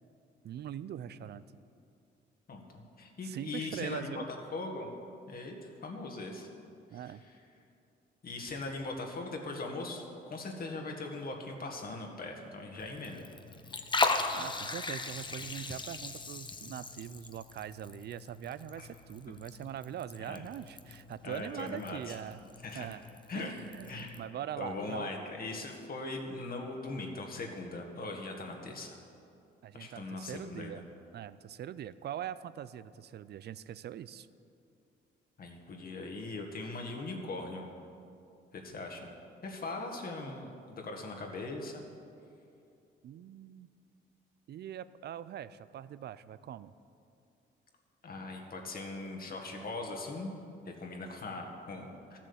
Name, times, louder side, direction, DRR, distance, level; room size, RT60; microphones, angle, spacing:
voice 1, 0.4-1.4 3.2-4.3 6.9-7.2 14.3-22.4 22.7-23.0 23.3-25.1 29.6-30.8 31.1-34.3 43.0-43.7 44.5-46.7, right 10 dB, 55° right, 16 dB, 0.5 m, -42 dB
voice 2, 2.5-4.1 4.5-4.9 5.3-6.5 6.9-7.1 8.2-13.2 18.8-18.9 20.3-20.4 21.2-22.2 22.6-22.9 23.3-23.6 23.8-24.2 24.6-29.0 29.7-30.7 35.4-37.7 38.5-39.1 39.4-41.8 48.0-50.4 50.7-52.2, left 2 dB, 50° left, 2 dB, 1.8 m, -40 dB
Liquid, 12.8-24.2, left 3 dB, 25° left, 0.8 m, -38 dB
13.5 x 7.4 x 7.0 m, 2.6 s
cardioid pair, 90°, 20 cm